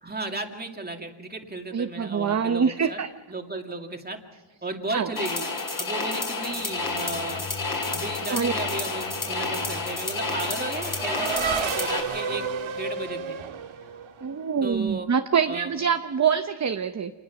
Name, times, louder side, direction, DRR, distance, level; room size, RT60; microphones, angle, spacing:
voice 1, 0.0-3.0 3.3-4.2 4.6-5.5 5.8-7.5 7.9-13.4 14.6-15.1 15.5-15.7, right 2 dB, 20° right, 3 dB, 2.3 m, -34 dB
voice 2, 1.7-3.1 4.9-5.1 8.3-8.5 14.2-17.1, right 7 dB, 35° right, 8 dB, 0.8 m, -25 dB
sound 1, 5.1-12.0, left 3 dB, 40° left, 4.7 m, -30 dB
sound 2, 6.3-12.4, left 3 dB, 80° left, 7.6 m, -44 dB
Race car auto racing / Accelerating revving vroom, 8.4-14.5, right 5 dB, 75° right, 1.6 m, -32 dB
28.5 x 20.5 x 6.0 m, 1.3 s
wide cardioid pair, 160°, 48 cm